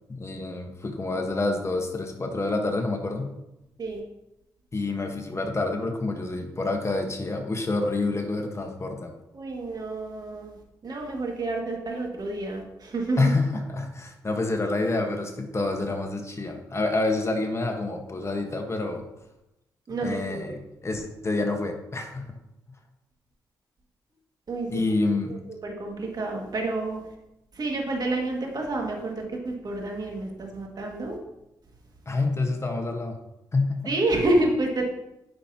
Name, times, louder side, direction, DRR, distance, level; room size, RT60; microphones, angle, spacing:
voice 1, 0.1-3.3 4.7-9.1 13.2-19.1 20.0-22.3 24.7-25.3 32.1-33.2 33.5-33.9, left 2 dB, 35° left, 3 dB, 1.2 m, -28 dB
voice 2, 9.3-10.6 10.8-13.3 19.9-20.5 24.5-24.8 25.6-27.0 27.6-31.2 33.9-34.9, right 2 dB, 55° right, 0 dB, 2.0 m, -29 dB
9.7 x 5.9 x 2.8 m, 0.91 s
supercardioid pair, 55°, 8 cm